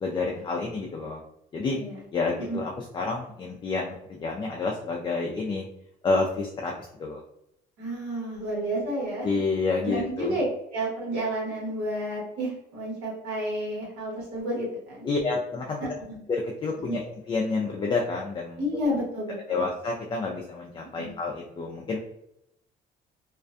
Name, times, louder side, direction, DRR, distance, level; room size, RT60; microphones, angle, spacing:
voice 1, 0.0-1.2 1.5-1.8 2.1-5.6 6.0-6.7 7.0-7.2 9.2-10.4 15.0-15.9 16.3-18.6 19.5-22.0, left 3 dB, 30° left, -1 dB, 0.4 m, -29 dB
voice 2, 1.7-2.0 2.4-2.6 7.8-9.3 9.8-10.4 10.7-15.1 16.0-16.2 16.9-17.0 18.6-19.6 20.8-21.1, equal, 80° right, -5 dB, 1.2 m, -31 dB
2.5 x 2.1 x 2.5 m, 0.80 s
cardioid pair, 110°, 17 cm